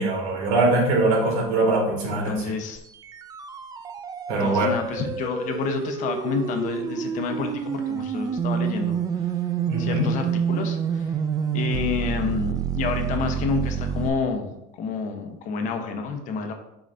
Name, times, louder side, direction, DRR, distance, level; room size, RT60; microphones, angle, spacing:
voice 1, 0.0-2.4 4.3-4.7 9.7-10.1, right 2 dB, 90° right, -1 dB, 2.3 m, -22 dB
voice 2, 2.2-2.8 4.4-9.0 9.8-11.1 11.5-14.5 14.8-16.5, left 5 dB, 50° left, 5 dB, 1.0 m, -29 dB
sound 1, 2.8-14.1, right 7 dB, 20° right, 0.4 m, -28 dB
7.5 x 4.9 x 2.7 m, 0.87 s
cardioid pair, 140°, 17 cm